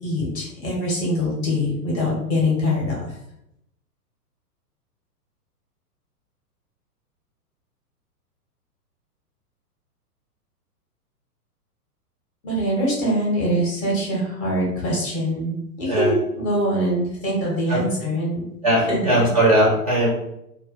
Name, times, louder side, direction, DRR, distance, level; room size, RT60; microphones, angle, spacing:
voice 1, 0.0-3.1 12.4-18.5 18.9-19.3, equal, 20° left, -4 dB, 0.6 m, -23 dB
voice 2, 18.6-20.1, right 1 dB, 25° right, -4 dB, 0.5 m, -19 dB
2.2 x 2.1 x 3.8 m, 0.82 s
figure-of-eight pair, 110°, 48 cm